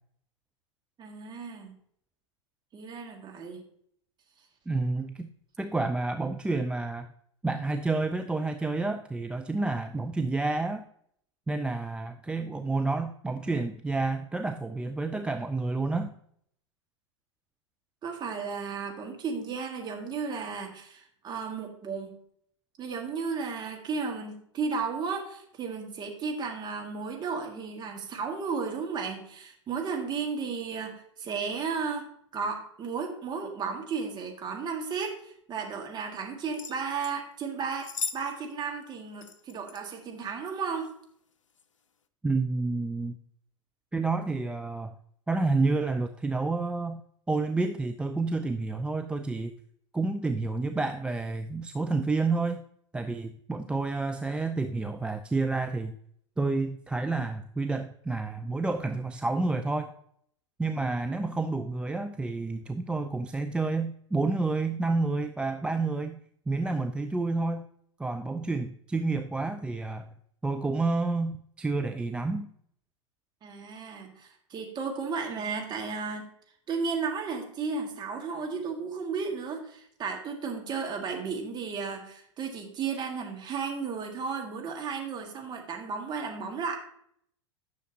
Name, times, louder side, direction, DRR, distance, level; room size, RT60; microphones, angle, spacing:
voice 1, 1.0-1.7 2.7-3.6 18.0-22.2 22.8-32.1 32.3-40.9 73.4-76.2 76.7-86.8, right 5 dB, 25° right, 3 dB, 1.9 m, -34 dB
voice 2, 4.7-5.3 5.6-7.1 7.4-10.8 11.5-16.1 42.2-43.2 43.9-44.9 45.3-47.0 47.3-49.5 49.9-52.6 52.9-56.0 56.4-59.9 60.6-66.2 66.5-67.7 68.0-70.1 70.4-72.5, right 3 dB, 5° right, 7 dB, 0.3 m, -29 dB
sound 1, 36.5-37.2 37.7-38.2 38.5-38.6 39.2-39.8 40.7-40.9 41.5-41.6, left 5 dB, 85° left, 0.6 m, -37 dB
10.0 x 6.3 x 2.8 m, 0.66 s
figure-of-eight pair, 95°, 16 cm